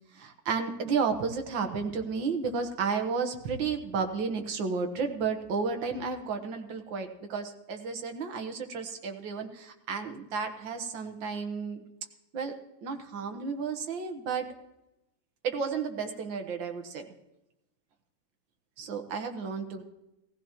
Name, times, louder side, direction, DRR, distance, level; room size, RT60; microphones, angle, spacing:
voice 1, 0.1-11.8 12.3-12.6 12.8-14.5 15.4-17.1 18.8-19.8, right 5 dB, 75° right, 6 dB, 2.0 m, -32 dB
18.5 x 15.0 x 3.0 m, 0.92 s
omnidirectional pair, 2.1 m